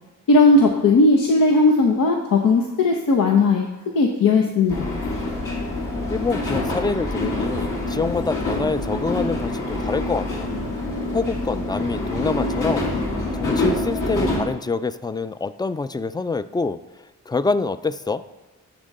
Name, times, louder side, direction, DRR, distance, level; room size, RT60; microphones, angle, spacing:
voice 1, 0.3-3.7 3.9-5.0, left 3 dB, 90° left, 2 dB, 0.7 m, -17 dB
sound 1, 4.7-14.4, left 2 dB, 70° left, 1.9 m, -26 dB
voice 2, 6.1-10.5 11.1-12.9 13.3-16.8 17.3-18.2, left 3 dB, 15° left, 14 dB, 0.3 m, -26 dB
10.5 x 3.6 x 6.6 m, 1.1 s
cardioid pair, 50°, 32 cm